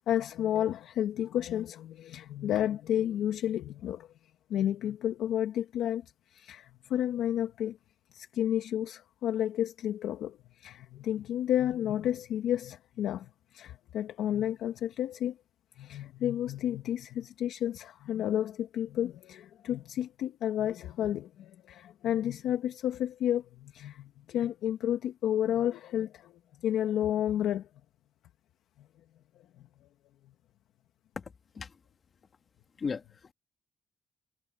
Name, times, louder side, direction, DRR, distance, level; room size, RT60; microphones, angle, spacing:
voice 1, 0.0-4.1 4.5-6.0 6.3-7.8 8.1-15.3 15.8-26.3 26.6-27.6, left 11 dB, 80° left, 1.4 m, -31 dB
voice 2, 31.2-31.8 32.8-33.3, left 5 dB, 40° left, 1.9 m, -37 dB
cardioid pair, 90°, 0 cm